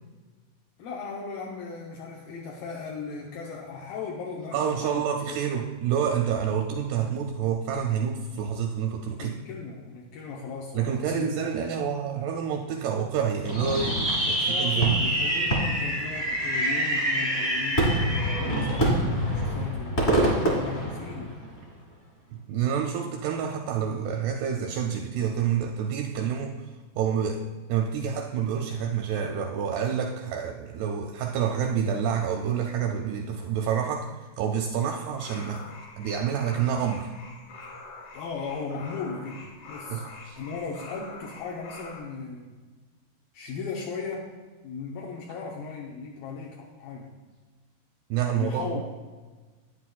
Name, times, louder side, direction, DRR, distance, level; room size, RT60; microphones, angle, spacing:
voice 1, 0.8-5.6 9.2-11.4 13.6-13.9 14.2-21.4 38.1-40.1 40.4-42.5 43.3-44.3 44.6-47.1 48.3-48.8, left 4 dB, 80° left, -2 dB, 2.0 m, -37 dB
voice 2, 4.5-9.4 10.7-14.0 14.3-15.0 22.3-26.6 27.0-27.4 27.7-34.1 34.4-35.6 36.0-37.1 39.9-40.4 48.1-48.8, right 8 dB, 85° right, 3 dB, 2.3 m, -28 dB
Fireworks, 13.4-21.6, right 1 dB, 40° left, 0.9 m, -25 dB
sound 1, 35.1-42.0, left 3 dB, 55° left, 2.3 m, -45 dB
11.5 x 9.2 x 2.3 m, 1.3 s
omnidirectional pair, 5.0 m